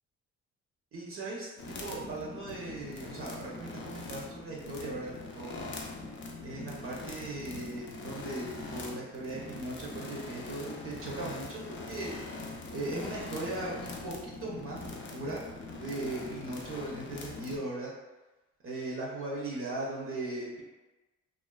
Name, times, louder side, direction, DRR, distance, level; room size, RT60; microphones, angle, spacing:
voice 1, 0.9-1.5 1.8-5.5 6.4-12.1 12.7-15.4 15.7-17.9 18.6-20.6, right 2 dB, 45° right, -4 dB, 0.6 m, -38 dB
sound 1, 1.6-17.6, left 3 dB, 40° left, 0.5 m, -42 dB
2.4 x 2.4 x 2.2 m, 1.1 s
cardioid pair, 90°, 30 cm